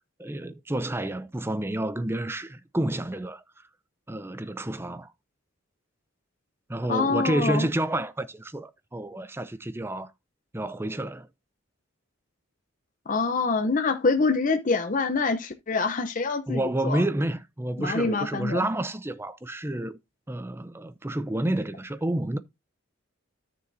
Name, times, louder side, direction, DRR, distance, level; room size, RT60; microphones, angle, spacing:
voice 1, 0.2-3.4 4.1-5.1 6.7-10.1 10.5-11.3 16.5-20.0 20.3-22.4, right 1 dB, 10° right, 0.5 m, -29 dB
voice 2, 6.9-7.7 13.1-17.0 17.8-18.7, left 4 dB, 40° left, 0.7 m, -25 dB
13.0 x 6.8 x 2.7 m
head